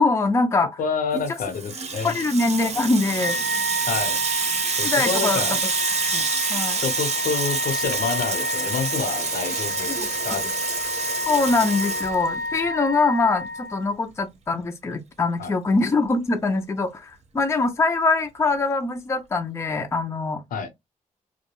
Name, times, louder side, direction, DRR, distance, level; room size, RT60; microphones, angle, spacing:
voice 1, 0.0-0.8 2.0-3.4 4.8-5.6 6.1-6.2 6.5-6.8 9.9-10.4 11.3-20.4, left 3 dB, 20° left, 0.4 m, -23 dB
voice 2, 0.8-2.2 3.9-4.2 4.8-5.6 6.8-9.9 10.2-10.5 15.4-15.6 20.5-20.7, left 5 dB, 85° left, 0.8 m, -28 dB
Water tap faucet / Sink (filling or washing), 1.2-12.7, right 5 dB, 50° right, 0.6 m, -27 dB
Wind instrument woodwind instrument, 3.1-13.9, equal, 85° right, 0.6 m, -30 dB
2.3 x 2.1 x 2.9 m
wide cardioid pair, 120°, 14 cm